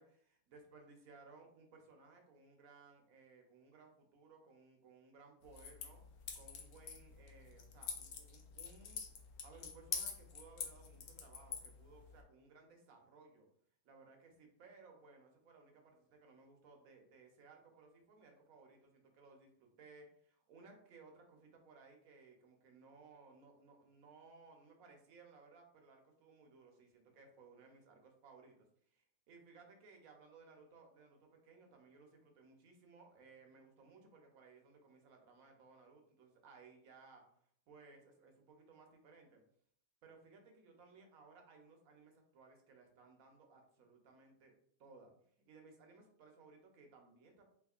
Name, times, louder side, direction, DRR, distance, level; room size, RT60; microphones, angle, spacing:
voice 1, 0.0-6.0 6.3-9.0 9.4-13.5 13.8-28.7 28.9-37.2 37.7-39.4 40.0-44.5 44.8-45.1 45.4-47.5, right 4 dB, 60° right, 2 dB, 1.0 m, -61 dB
sound 1, 5.4-12.2, left 6 dB, 70° left, 1.0 m, -47 dB
3.6 x 3.5 x 2.4 m, 0.64 s
omnidirectional pair, 1.9 m